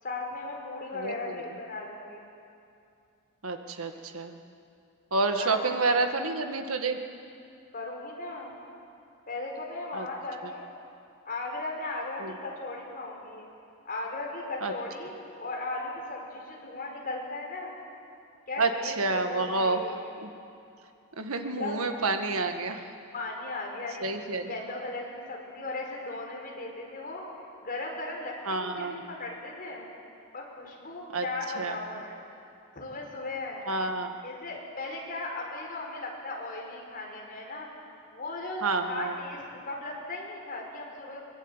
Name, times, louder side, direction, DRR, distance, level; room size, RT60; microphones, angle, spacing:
voice 1, 0.0-2.3 5.4-6.1 7.7-8.5 9.3-10.7 11.3-13.5 13.9-17.7 18.5-20.1 21.6-21.8 23.1-24.1 24.4-27.2 27.6-29.9 30.3-32.2 32.8-33.6 34.2-41.2, left 2 dB, 45° left, -1 dB, 5.3 m, -37 dB
voice 2, 0.9-1.4 3.4-4.4 5.1-7.0 9.9-10.1 12.2-12.3 14.6-14.7 18.6-20.3 21.2-22.8 24.0-24.5 28.5-29.1 31.1-31.3 31.6-31.8 33.7-34.1 38.6-39.2, right 3 dB, 80° right, 5 dB, 1.8 m, -29 dB
23.0 x 21.0 x 9.0 m, 2.5 s
head